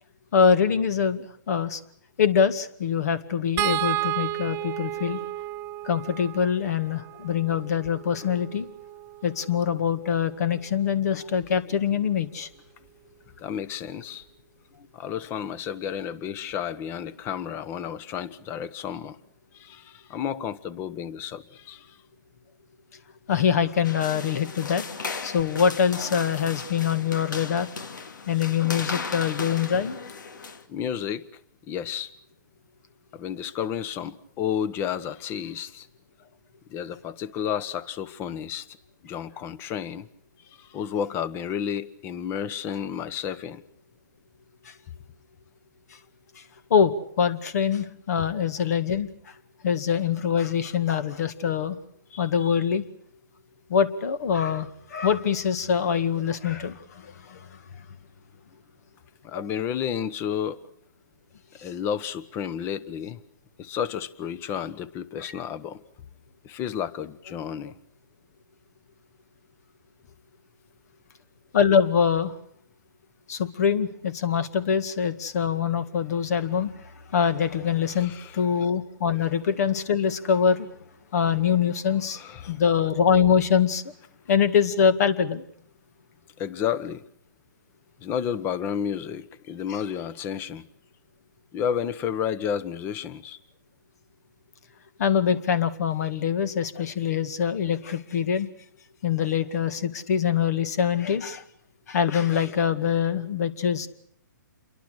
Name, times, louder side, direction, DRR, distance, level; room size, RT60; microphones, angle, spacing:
voice 1, 0.3-1.8 2.2-5.2 5.8-8.7 9.2-12.5 23.3-24.9 25.2-27.7 28.3-30.0 44.6-44.7 46.4-46.5 46.7-49.3 49.6-51.8 52.1-52.8 53.7-57.6 59.3-59.4 61.6-61.7 65.2-65.3 71.5-72.3 73.3-76.8 77.1-80.7 81.1-83.8 84.3-85.4 95.0-98.5 99.0-101.4 101.9-103.9, left 7 dB, 50° left, 13 dB, 2.1 m, -24 dB
sound 1, 3.6-9.9 11.4-11.6 12.0-12.1, right 16 dB, 20° right, 1.1 m, -33 dB
voice 2, 13.4-14.2 14.9-19.2 19.5-22.0 30.7-31.3 31.7-32.1 33.1-35.9 36.7-38.7 39.0-40.1 40.6-43.6 59.2-60.6 61.6-63.2 63.6-65.8 66.4-67.7 77.9-78.4 82.1-82.5 86.4-87.0 88.0-90.6 91.5-93.4, left 8 dB, 20° left, 18 dB, 1.2 m, -31 dB
sound 2, 23.8-30.6, left 5 dB, 70° left, 2.4 m, -36 dB
28.5 x 23.0 x 6.5 m, 0.67 s
hypercardioid pair, 145°, 11 cm